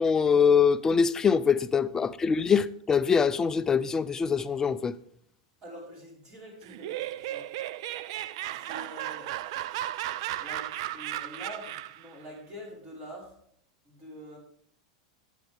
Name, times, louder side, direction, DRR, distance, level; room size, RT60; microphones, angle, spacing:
voice 1, 0.0-4.9, left 6 dB, 20° left, 0.5 m, -23 dB
voice 2, 5.6-7.5 8.4-9.3 9.7-9.8 10.4-13.4 13.8-14.4, equal, 30° right, 5.0 m, -45 dB
Laughter, 6.6-12.1, right 14 dB, 65° right, 0.4 m, -35 dB
11.5 x 8.2 x 3.6 m
supercardioid pair, 125°, 3 cm